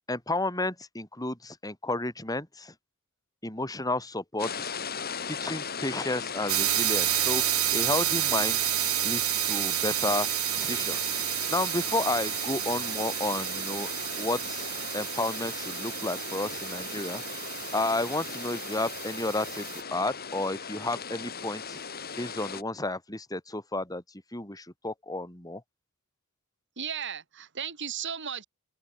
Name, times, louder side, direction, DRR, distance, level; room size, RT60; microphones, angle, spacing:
voice 1, 0.1-2.7 3.4-4.7 5.3-7.4 7.7-8.6 9.0-10.3 10.5-11.1 11.5-13.9 14.2-14.6 14.9-17.2 17.7-21.8 22.2-24.0 24.3-25.6, left 2 dB, 15° left, 4.3 m, -32 dB
sound 1, 4.4-22.6, left 6 dB, 45° left, 7.3 m, -38 dB
sound 2, 6.5-19.8, right 16 dB, 80° right, 1.5 m, -30 dB
voice 2, 26.8-28.4, right 8 dB, 55° right, 3.8 m, -35 dB
open air
head